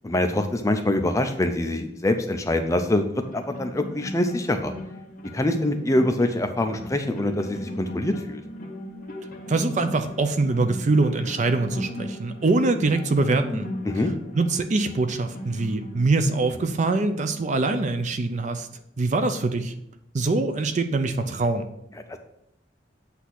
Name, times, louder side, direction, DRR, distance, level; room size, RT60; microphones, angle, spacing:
voice 1, 0.0-4.7 5.3-8.4 13.8-14.1 22.1-22.2, left 1 dB, 15° left, 6 dB, 0.5 m, -24 dB
sound 1, 3.1-18.1, left 1 dB, 45° left, 1.1 m, -38 dB
voice 2, 9.5-13.7 14.3-18.7 19.0-19.7 20.1-21.7, right 3 dB, 40° right, 8 dB, 0.5 m, -23 dB
8.1 x 2.8 x 5.8 m, 0.77 s
head